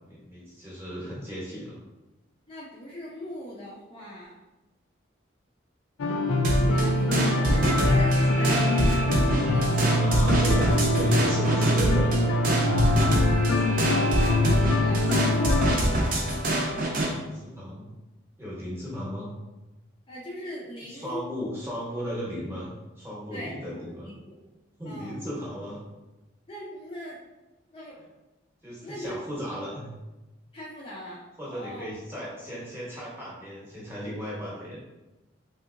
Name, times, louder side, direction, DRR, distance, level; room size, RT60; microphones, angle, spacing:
voice 1, 0.1-1.8 9.9-12.2 16.8-17.9 18.4-19.3 20.9-22.7 23.0-24.1 24.8-25.8 28.6-29.9 31.4-34.8, equal, 10° right, -7 dB, 0.8 m, -35 dB
voice 2, 2.5-4.3 6.6-10.4 12.9-15.9 20.1-21.2 23.3-23.5 24.0-24.4 24.8-25.2 26.5-27.2 27.7-28.0 28.8-29.1 30.5-31.9 32.1-32.2, equal, 25° left, -6 dB, 0.4 m, -40 dB
sound 1, 6.0-15.8, left 1 dB, 90° left, 0.4 m, -24 dB
sound 2, 6.4-17.1, right 1 dB, 45° right, 0.5 m, -25 dB
3.3 x 2.8 x 2.5 m, 1.1 s
head